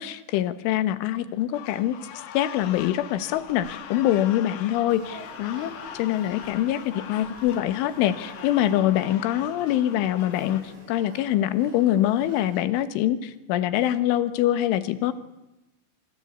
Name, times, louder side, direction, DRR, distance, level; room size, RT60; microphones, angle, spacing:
voice 1, 0.0-2.0 2.3-5.7 6.0-15.1, left 12 dB, 80° left, 12 dB, 3.7 m, -24 dB
sound 1, 1.5-10.6, left 9 dB, 60° left, 2.9 m, -41 dB
Male speech man speaking / Child speech kid speaking / Conversation, 4.9-12.6, right 2 dB, 85° right, 8.2 m, -47 dB
26.5 x 25.0 x 8.5 m, 0.97 s
omnidirectional pair, 5.6 m